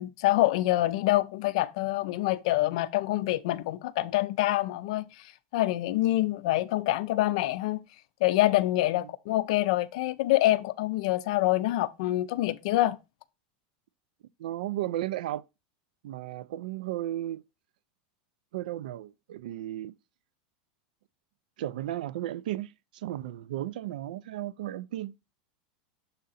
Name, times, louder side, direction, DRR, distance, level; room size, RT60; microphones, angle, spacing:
voice 1, 0.0-5.2 5.5-7.8 8.2-13.0, left 16 dB, 50° left, 0.4 m, -26 dB
voice 2, 14.4-15.4 16.0-17.4 18.5-20.0 21.6-25.1, right 13 dB, 75° right, 0.4 m, -34 dB
6.9 x 3.7 x 4.0 m
supercardioid pair, 180°, 5 cm